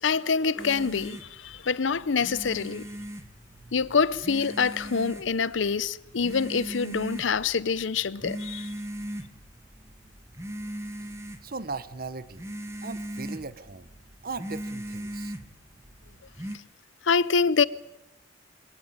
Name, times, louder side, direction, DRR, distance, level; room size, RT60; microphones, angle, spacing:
voice 1, 0.0-2.9 3.7-8.7 17.0-17.6, left 5 dB, 85° left, 0.7 m, -26 dB
sound 1, 0.6-16.6, equal, 15° right, 1.7 m, -40 dB
voice 2, 11.4-12.5 12.8-13.9 14.2-15.3, right 4 dB, 50° right, 1.0 m, -38 dB
22.5 x 18.0 x 8.8 m
head